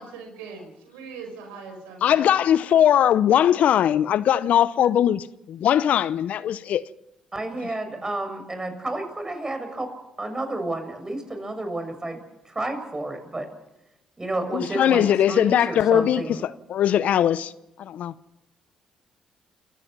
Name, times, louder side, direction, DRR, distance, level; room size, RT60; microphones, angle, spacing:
voice 1, 0.0-2.3, right 4 dB, 85° right, 5.6 m, -40 dB
voice 2, 2.0-6.9 14.5-17.4 17.9-18.1, left 10 dB, 65° left, 0.7 m, -20 dB
voice 3, 7.3-9.9 10.2-12.2 12.5-13.5 14.2-16.4, right 2 dB, 25° right, 7.1 m, -31 dB
29.5 x 16.5 x 6.0 m
hypercardioid pair, 50°, 3 cm